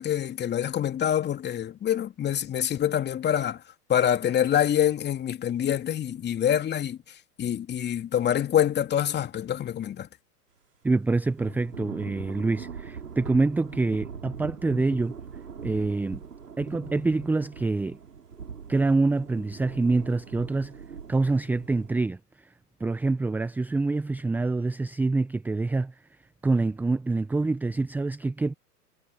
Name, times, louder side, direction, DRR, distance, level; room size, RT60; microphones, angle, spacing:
voice 1, 0.0-3.6 3.9-7.0 7.4-10.1, left 10 dB, 20° left, 2.7 m, -26 dB
voice 2, 10.8-15.1 15.6-16.2 16.6-18.0 18.7-20.7 21.1-22.2 22.8-25.9 26.4-28.5, right 3 dB, 5° right, 0.6 m, -26 dB
Thunder / Rain, 11.4-21.9, right 6 dB, 85° right, 5.3 m, -42 dB
hypercardioid pair, 110°, 46 cm